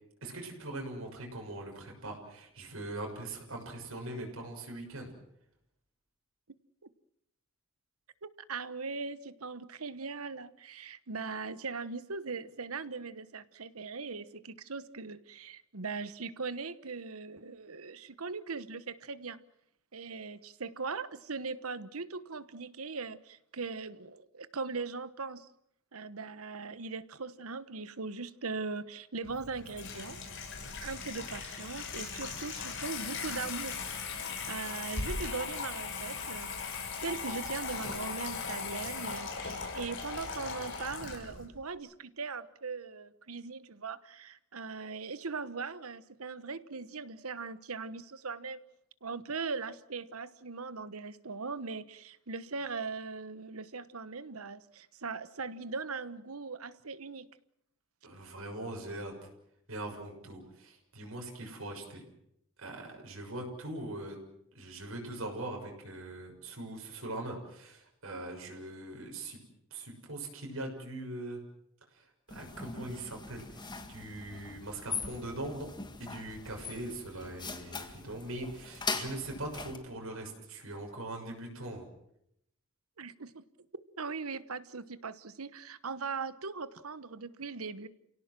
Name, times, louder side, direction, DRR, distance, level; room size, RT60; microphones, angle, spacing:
voice 1, 0.2-5.1 58.0-59.1 59.7-62.0 62.6-64.2 64.5-69.4 69.7-71.4 71.9-75.7 76.0-81.8, right 1 dB, 70° right, 1 dB, 6.6 m, -41 dB
voice 2, 8.2-19.4 19.9-25.5 25.9-30.2 30.8-33.8 34.1-36.5 36.9-48.6 49.0-57.3 83.0-83.4 84.0-87.9, right 4 dB, 85° right, 15 dB, 1.2 m, -40 dB
Water tap faucet / Sink (filling or washing), 29.2-41.5, left 4 dB, 60° left, 6.5 m, -38 dB
sound 1, 72.3-79.8, left 4 dB, 20° left, 1.9 m, -41 dB
30.0 x 17.5 x 7.6 m, 0.76 s
head